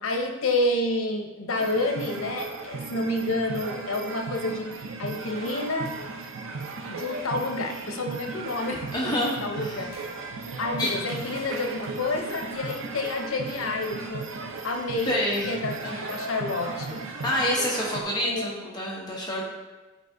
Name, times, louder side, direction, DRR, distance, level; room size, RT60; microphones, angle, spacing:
voice 1, 0.0-5.9 6.9-9.1 9.4-9.9 10.6-14.3 14.6-15.2 15.5-17.0 18.1-18.5, left 2 dB, 80° left, 3 dB, 0.8 m, -29 dB
sound 1, 1.5-18.0, right 4 dB, 75° right, 0.6 m, -36 dB
voice 2, 8.9-9.8 10.8-10.9 15.1-15.5 15.8-16.0 17.2-19.4, equal, 20° left, -3 dB, 0.9 m, -27 dB
8.2 x 4.6 x 2.7 m, 1.2 s
head